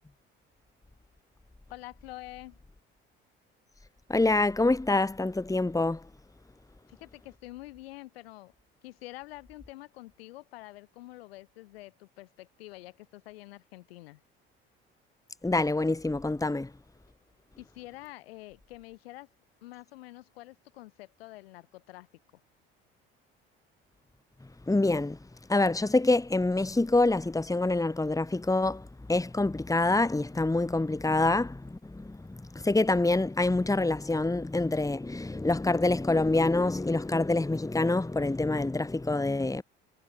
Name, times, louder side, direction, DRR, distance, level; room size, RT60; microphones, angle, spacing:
voice 1, 1.7-2.6 6.9-8.5 8.8-14.2 17.6-19.3 19.6-22.1, left 18 dB, 85° left, 6.6 m, -47 dB
voice 2, 4.1-6.0 15.4-16.7 24.7-25.2 25.5-39.6, left 2 dB, 10° left, 2.4 m, -26 dB
hypercardioid pair, 60°, 30 cm